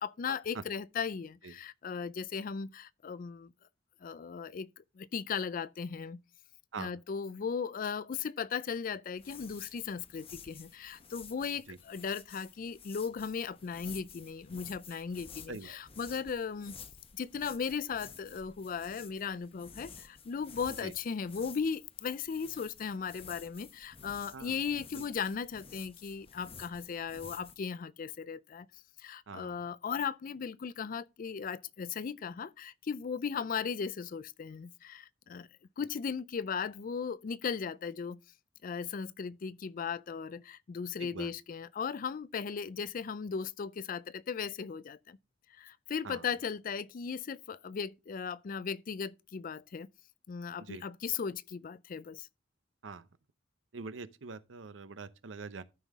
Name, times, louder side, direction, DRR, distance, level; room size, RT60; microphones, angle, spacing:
voice 1, 0.0-3.5 4.0-6.2 6.8-16.8 17.1-28.7 29.0-35.5 35.8-38.2 38.6-45.2 45.5-49.9 50.3-52.3, left 6 dB, 45° left, 0.4 m, -37 dB
sound 1, 9.2-27.6, left 6 dB, 30° left, 0.8 m, -51 dB
voice 2, 29.3-29.6 41.0-41.3 46.0-46.2 50.6-50.8 52.8-53.1 53.7-55.6, right 4 dB, 85° right, 0.7 m, -44 dB
13.0 x 5.6 x 3.5 m
head